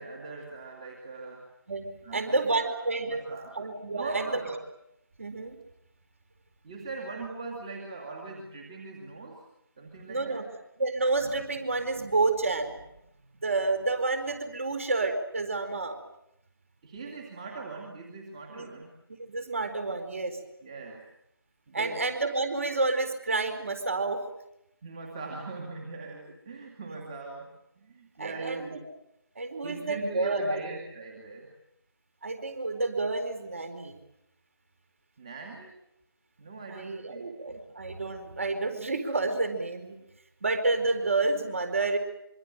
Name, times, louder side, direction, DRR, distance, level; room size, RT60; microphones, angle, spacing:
voice 1, 0.0-1.4 2.0-2.7 3.1-3.5 3.9-4.6 6.6-9.4 9.8-10.4 16.8-18.9 20.6-21.0 21.7-22.1 24.8-27.5 27.8-28.8 29.6-31.5 35.2-35.7 36.4-37.6, right 3 dB, 15° right, 0 dB, 2.5 m, -40 dB
voice 2, 2.1-3.2 3.5-4.4 5.2-5.6 10.1-10.4 10.8-12.8 13.4-16.0 18.5-18.7 19.3-20.4 21.7-24.2 28.2-28.7 29.4-30.6 32.2-34.0 36.7-40.0 40.4-42.0, right 3 dB, 35° right, 9 dB, 4.5 m, -29 dB
25.5 x 24.5 x 9.2 m, 0.80 s
figure-of-eight pair, 165°, 13 cm